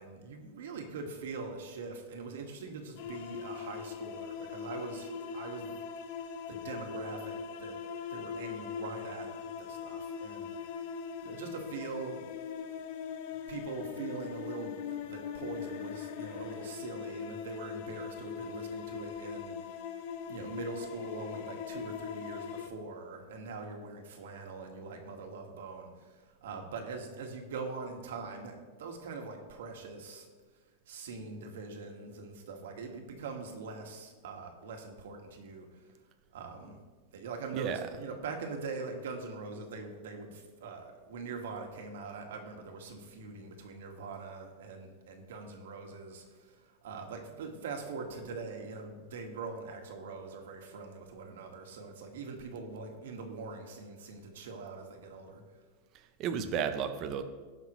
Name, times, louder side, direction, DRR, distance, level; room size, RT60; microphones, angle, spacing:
voice 1, 0.0-5.8 6.2-7.8 8.1-10.9 11.2-12.2 13.5-19.9 20.3-30.3 30.9-35.9 36.3-36.8 37.1-55.6, right 4 dB, 85° right, 3 dB, 1.6 m, -43 dB
sound 1, 3.0-22.7, left 7 dB, 45° left, 0.7 m, -41 dB
voice 2, 55.9-57.2, right 7 dB, 30° right, 7 dB, 0.6 m, -33 dB
17.5 x 5.9 x 3.1 m, 1.4 s
supercardioid pair, 170°, 0 cm